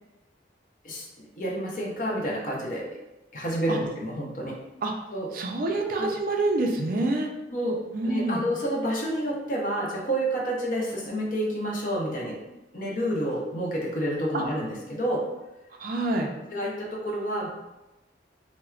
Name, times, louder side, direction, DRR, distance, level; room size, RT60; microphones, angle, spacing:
voice 1, 0.8-2.9 3.3-4.6 5.1-5.3 5.7-6.1 7.5-12.4 12.7-15.3 16.5-17.5, equal, 45° left, -2 dB, 0.7 m, -29 dB
voice 2, 5.3-7.3 7.9-8.5 14.3-14.4 15.8-16.3, right 2 dB, 50° right, 2 dB, 0.4 m, -27 dB
4.3 x 2.0 x 2.4 m, 0.99 s
head